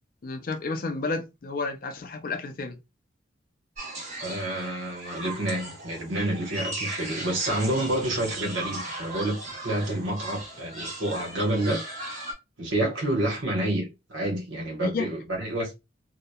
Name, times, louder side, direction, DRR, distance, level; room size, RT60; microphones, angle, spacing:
voice 1, 0.2-2.8 14.8-15.1, left 3 dB, 45° left, 0.4 m, -31 dB
sound 1, 3.8-12.3, right 2 dB, 35° right, 1.0 m, -37 dB
voice 2, 4.2-9.4 9.6-11.8 12.6-15.7, right 1 dB, 85° right, 1.1 m, -28 dB
2.8 x 2.1 x 2.2 m
head